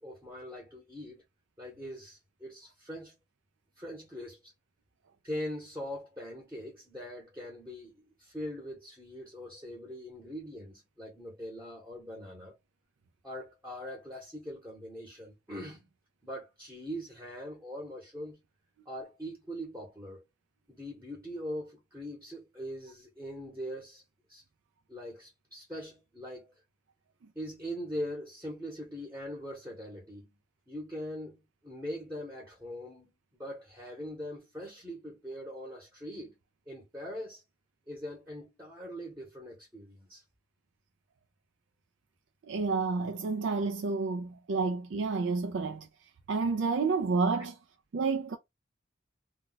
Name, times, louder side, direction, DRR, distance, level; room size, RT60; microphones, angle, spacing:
voice 1, 0.0-1.2 1.6-3.1 3.8-4.5 5.2-12.6 13.2-15.9 16.2-18.4 18.9-20.2 20.7-24.0 24.3-24.4 24.9-26.5 27.3-30.4 30.7-33.1 33.4-36.3 36.7-37.4 37.9-40.2, equal, 10° right, 0.9 m, -42 dB
voice 2, 42.5-45.9 46.3-47.5 47.9-48.4, right 4 dB, 70° right, 0.4 m, -29 dB
2.3 x 2.2 x 3.8 m
head